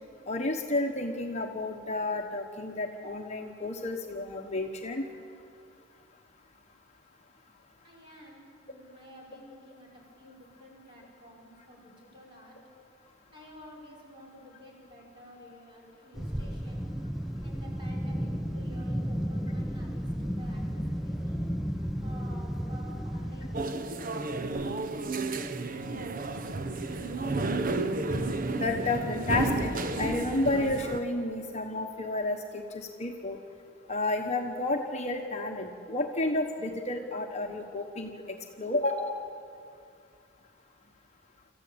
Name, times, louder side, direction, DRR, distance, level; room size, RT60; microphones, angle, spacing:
voice 1, 0.3-5.0 28.6-29.7 30.0-33.4 33.9-39.2, left 2 dB, 35° left, 2 dB, 1.2 m, -31 dB
voice 2, 7.8-12.5 13.3-16.8 17.4-21.4 22.0-24.0, equal, 25° right, -2 dB, 5.8 m, -51 dB
sound 1, 16.1-23.7, equal, ahead, 0.6 m, -33 dB
sound 2, 23.5-31.0, right 2 dB, 40° right, 0.9 m, -31 dB
27.0 x 14.5 x 8.7 m, 2.4 s
head